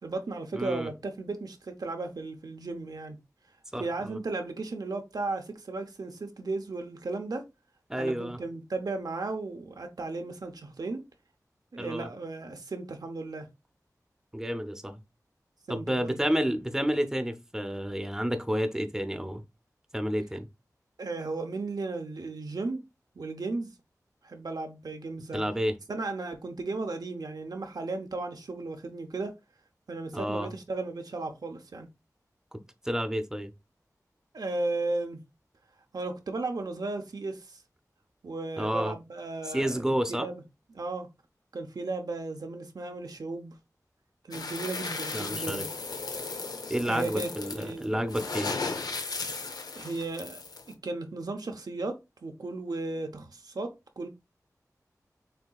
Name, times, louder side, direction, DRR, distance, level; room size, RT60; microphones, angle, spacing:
voice 1, 0.0-3.2 3.8-7.4 8.0-11.0 11.7-13.5 15.7-16.2 21.0-22.9 23.2-23.7 24.2-25.5 25.9-29.4 29.9-31.9 34.3-35.2 35.9-37.6 38.2-39.8 40.1-40.4 40.7-41.1 41.5-43.6 44.2-45.7 46.8-47.3 47.6-48.0 49.7-50.4 50.7-54.1, right 3 dB, 80° right, 0.8 m, -35 dB
voice 2, 0.5-0.9 3.7-4.2 7.9-8.4 11.8-12.1 14.3-15.0 15.7-19.4 19.9-20.5 25.3-25.7 30.1-30.5 32.8-33.5 38.6-38.9 39.5-40.3 45.1-45.6 46.7-48.5, equal, 10° right, 0.7 m, -30 dB
sound 1, 44.3-50.7, left 4 dB, 90° left, 0.7 m, -36 dB
6.5 x 2.7 x 2.3 m
wide cardioid pair, 70°, 7 cm